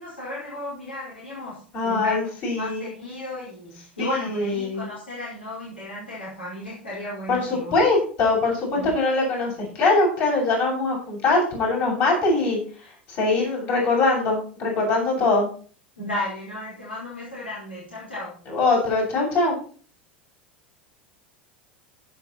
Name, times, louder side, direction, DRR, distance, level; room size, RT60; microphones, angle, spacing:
voice 1, 0.0-7.7 8.7-8.9 15.2-15.3 16.0-18.3, left 1 dB, 80° left, -6 dB, 5.0 m, -34 dB
voice 2, 1.7-2.9 4.0-4.9 7.3-15.5 18.5-19.6, left 3 dB, 45° left, -2 dB, 7.6 m, -22 dB
15.5 x 7.9 x 4.3 m, 0.42 s
figure-of-eight pair, 80°, 6 cm